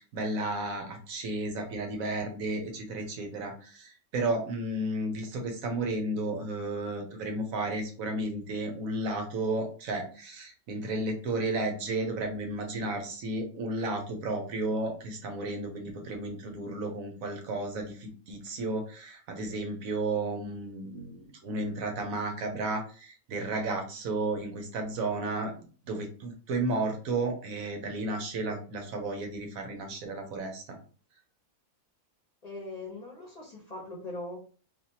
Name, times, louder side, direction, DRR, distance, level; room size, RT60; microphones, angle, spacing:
voice 1, 0.0-25.5 25.9-30.8, right 2 dB, 80° right, 4 dB, 1.2 m, -33 dB
voice 2, 32.4-34.4, left 2 dB, 35° left, -1 dB, 0.8 m, -40 dB
3.4 x 2.6 x 2.8 m, 0.40 s
omnidirectional pair, 1.5 m